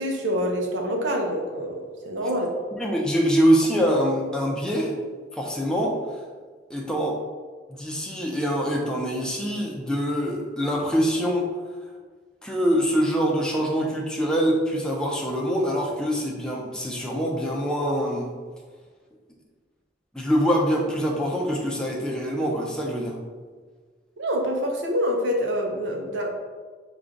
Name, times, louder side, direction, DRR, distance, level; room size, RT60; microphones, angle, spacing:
voice 1, 0.0-2.6 24.2-26.3, equal, 70° right, 2 dB, 0.7 m, -26 dB
voice 2, 2.7-4.9 5.3-6.0 6.7-7.2 7.7-11.5 12.4-18.3 20.1-23.2, equal, 5° left, -2 dB, 0.6 m, -24 dB
4.9 x 2.4 x 3.9 m, 1.5 s
head